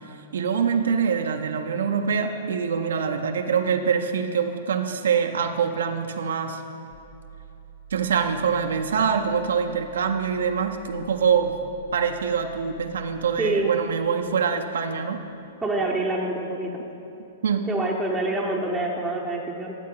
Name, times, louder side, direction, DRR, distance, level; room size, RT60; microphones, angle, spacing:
voice 1, 0.3-6.6 7.9-11.5 11.9-15.2 17.4-17.7, right 6 dB, 85° right, 5 dB, 0.6 m, -24 dB
sound 1, 6.9-13.4, right 12 dB, 65° left, 1.3 m, -48 dB
voice 2, 13.4-13.7 15.6-16.7 17.7-19.7, right 2 dB, 5° right, -4 dB, 0.8 m, -26 dB
13.0 x 7.4 x 3.8 m, 2.8 s
hypercardioid pair, 140°, 0 cm